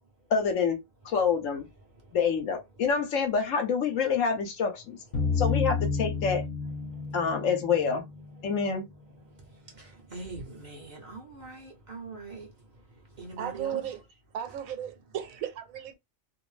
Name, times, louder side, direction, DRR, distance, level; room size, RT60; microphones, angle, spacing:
voice 1, 0.3-1.7 2.1-5.0 5.4-6.4 7.1-8.0 8.4-8.9, left 6 dB, 70° left, 1.1 m, -27 dB
sound 1, 5.1-8.9, left 5 dB, 45° left, 0.8 m, -31 dB
voice 2, 10.1-12.5 13.2-13.8, right 3 dB, 40° right, 0.7 m, -41 dB
voice 3, 13.4-14.0 14.3-15.9, right 10 dB, 80° right, 1.0 m, -35 dB
2.6 x 2.0 x 3.1 m
omnidirectional pair, 1.4 m